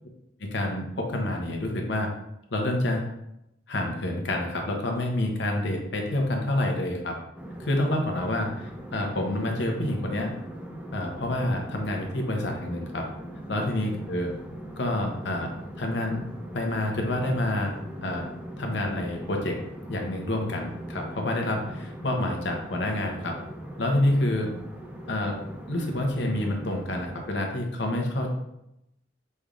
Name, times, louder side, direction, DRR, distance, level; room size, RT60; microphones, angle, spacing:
voice 1, 0.4-2.1 2.5-3.0 3.7-7.1 7.6-10.3 10.9-13.0 13.5-14.3 14.8-15.5 15.8-16.2 16.5-17.7 18.0-18.3 18.6-19.6 19.9-23.3 23.8-24.5 25.1-25.4 25.7-28.3, left 1 dB, 65° left, 1 dB, 0.8 m, -28 dB
sound 1, 7.3-27.3, right 1 dB, 5° right, 0.4 m, -40 dB
5.3 x 3.3 x 2.4 m, 0.84 s
head